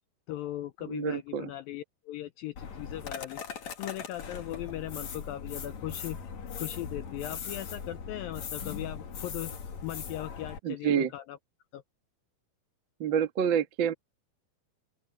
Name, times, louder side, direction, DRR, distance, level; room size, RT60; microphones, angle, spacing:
voice 1, 0.3-3.4 3.8-6.2 6.6-11.4 11.7-11.8, left 14 dB, 90° left, 2.1 m, -39 dB
voice 2, 0.8-1.5 10.6-11.1 13.0-13.9, right 8 dB, 80° right, 1.0 m, -28 dB
sound 1, 2.6-10.6, left 6 dB, 50° left, 3.0 m, -40 dB
open air
omnidirectional pair, 4.9 m